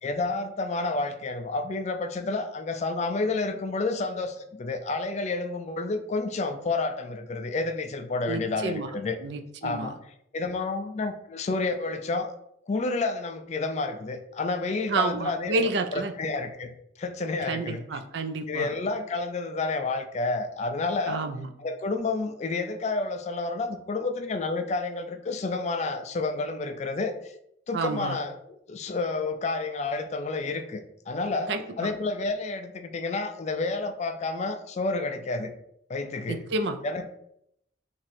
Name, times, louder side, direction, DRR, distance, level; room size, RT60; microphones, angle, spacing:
voice 1, 0.0-9.2 9.6-10.0 10.3-12.3 12.7-17.8 18.5-21.2 21.6-27.3 27.7-28.3 28.7-31.5 31.8-35.5 35.9-36.4 36.8-37.1, left 3 dB, 35° left, 7 dB, 0.3 m, -30 dB
voice 2, 8.3-8.9 9.2-9.9 14.9-16.1 17.5-18.7 21.1-21.5 27.7-28.2 31.5-31.9 36.3-36.8, right 3 dB, 60° right, 7 dB, 0.4 m, -30 dB
3.0 x 2.5 x 4.2 m, 0.75 s
head